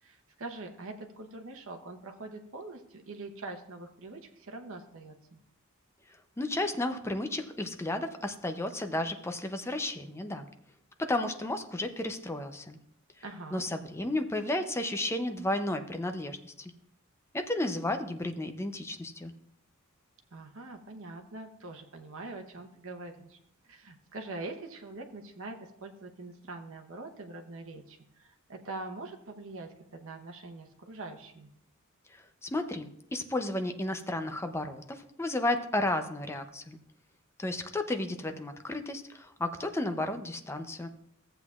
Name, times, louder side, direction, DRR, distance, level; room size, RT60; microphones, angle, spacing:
voice 1, 0.0-5.4 13.2-13.7 20.3-23.4 23.6-31.5, right 2 dB, 65° right, 4 dB, 1.0 m, -43 dB
voice 2, 6.4-10.5 11.0-12.8 13.5-16.7 17.3-19.3 32.1-36.8 37.4-40.9, left 1 dB, 10° left, 7 dB, 0.5 m, -33 dB
14.5 x 7.9 x 2.4 m, 0.73 s
head